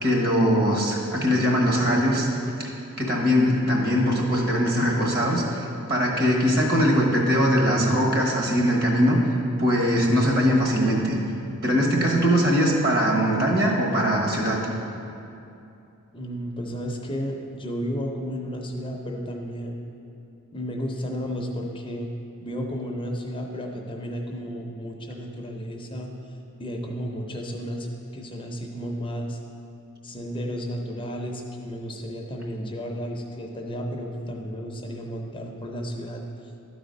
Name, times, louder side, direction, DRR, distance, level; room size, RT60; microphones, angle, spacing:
voice 1, 0.0-2.3 2.6-2.7 3.0-5.6 5.9-9.2 9.6-11.2 11.6-14.6, equal, 45° right, -1 dB, 1.4 m, -21 dB
voice 2, 16.1-19.8 20.5-22.1 22.4-26.1 26.6-27.9 28.1-29.4 30.0-36.2, equal, 25° left, 1 dB, 0.6 m, -33 dB
12.0 x 4.1 x 5.2 m, 2.6 s
head